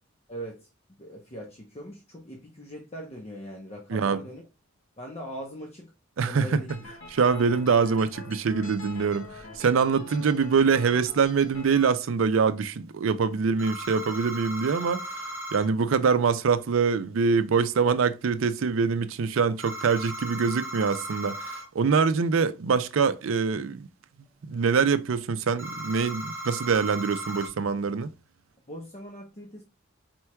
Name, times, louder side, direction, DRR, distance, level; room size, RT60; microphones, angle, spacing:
voice 1, 0.3-0.7 1.0-4.4 5.0-5.9 6.2-6.7 28.7-29.6, equal, 30° left, 0.7 m, -40 dB
voice 2, 6.2-6.6 7.1-15.3 15.5-23.9 24.4-28.1, right 5 dB, 75° right, 0.4 m, -24 dB
sound 1, 6.7-11.8, left 3 dB, 70° left, 0.9 m, -45 dB
sound 2, 13.6-15.7 19.6-21.7 25.6-27.5, right 1 dB, 15° right, 2.7 m, -37 dB
4.5 x 4.4 x 2.2 m
head